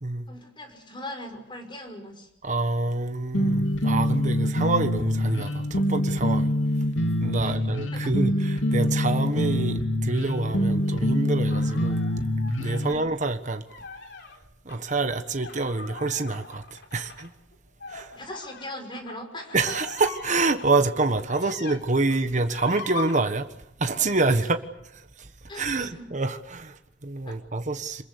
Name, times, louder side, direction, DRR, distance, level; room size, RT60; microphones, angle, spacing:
voice 1, 0.3-2.3 7.4-7.6 7.9-8.1 12.8-13.1 18.1-19.8 21.4-21.5 25.5-26.0 27.2-27.4, left 1 dB, 25° left, 5.6 m, -40 dB
voice 2, 2.4-6.5 7.2-12.1 12.6-13.6 14.6-17.3 17.9-18.2 19.5-23.5 23.8-24.6 24.9-28.0, right 3 dB, 40° right, 1.4 m, -27 dB
sound 1, 3.3-12.9, equal, 85° left, 2.4 m, -25 dB
sound 2, 11.5-13.1 13.6-14.4 14.7-14.8 15.3-21.8 22.1-23.2, left 4 dB, 65° left, 3.6 m, -41 dB
27.0 x 21.5 x 8.2 m
head